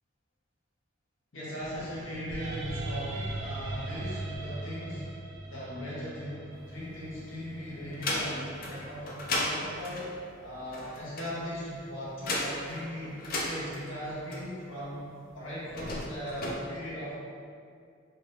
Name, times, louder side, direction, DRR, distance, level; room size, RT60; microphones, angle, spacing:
voice 1, 1.3-17.1, equal, 80° left, -8 dB, 0.9 m, -38 dB
sound 1, 1.6-9.7, right 2 dB, 60° right, 0.3 m, -40 dB
sound 2, 6.5-7.4 7.8-14.9 15.6-16.5, left 2 dB, 50° left, 0.4 m, -35 dB
2.6 x 2.6 x 3.2 m, 2.3 s
head